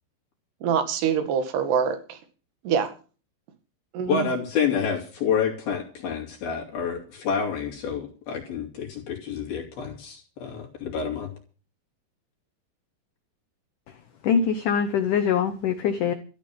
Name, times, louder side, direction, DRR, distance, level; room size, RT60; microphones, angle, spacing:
voice 1, 0.6-2.2 2.6-2.9 3.9-4.3, right 7 dB, 65° right, 4.0 m, -25 dB
voice 2, 4.1-11.3, left 6 dB, 60° left, 4.1 m, -28 dB
voice 3, 14.2-16.1, left 7 dB, 90° left, 1.8 m, -23 dB
14.0 x 7.9 x 8.7 m
omnidirectional pair, 5.2 m